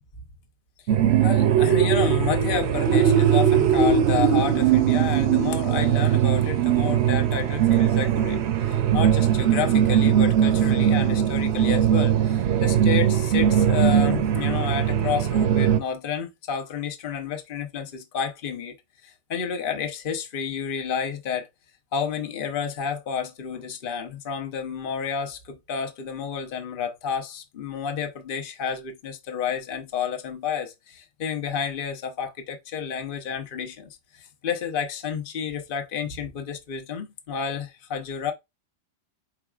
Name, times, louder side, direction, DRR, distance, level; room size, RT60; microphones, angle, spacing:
sound 1, 0.9-15.8, right 9 dB, 70° right, 0.8 m, -20 dB
voice 1, 1.2-18.8 19.0-21.5 21.9-38.3, left 7 dB, 50° left, 1.0 m, -30 dB
4.7 x 4.6 x 2.4 m
omnidirectional pair, 1.2 m